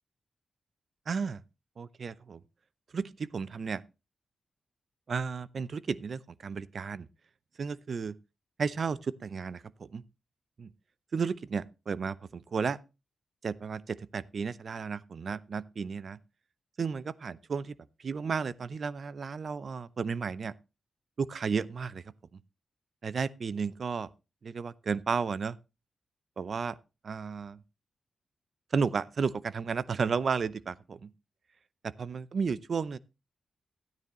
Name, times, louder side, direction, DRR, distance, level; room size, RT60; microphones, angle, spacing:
voice 1, 1.1-1.4 1.8-2.4 2.9-3.8 5.1-7.1 7.6-8.2 8.6-10.0 10.6-10.7 11.1-12.8 13.4-16.2 16.8-20.5 21.2-22.0 23.0-24.1 24.4-25.6 26.4-26.8 27.0-27.6 28.7-31.1 31.8-33.0, right 5 dB, 60° right, 0.6 m, -33 dB
13.0 x 9.4 x 3.0 m
cardioid pair, 70°, 0 cm